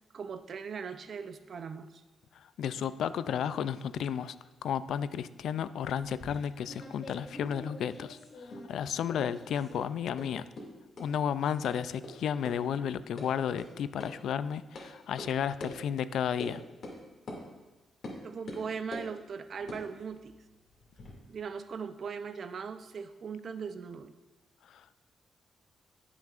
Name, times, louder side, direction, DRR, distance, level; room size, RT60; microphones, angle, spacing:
voice 1, 0.1-2.0 18.2-20.4 21.3-24.1, right 6 dB, 55° right, 10 dB, 0.5 m, -39 dB
voice 2, 2.3-4.3 4.6-8.2 8.7-10.5 11.0-16.6 24.6-24.8, left 8 dB, 80° left, 14 dB, 0.3 m, -33 dB
sound 1, 6.0-8.8 9.1-9.8 10.2-10.3 10.6-10.7 11.0-11.1 11.6-11.7 12.0-12.1 12.5-12.6 12.9-13.3 13.6-13.7 14.0-14.1 14.8-14.9 15.2-15.3 15.6-15.7 16.4-16.5 16.8-17.0 17.3-17.4 18.0-18.2 18.5-19.1 19.6-21.1, left 1 dB, 55° left, 2.2 m, -44 dB
17.5 x 6.1 x 2.5 m, 1.1 s
cardioid pair, 100°, 0 cm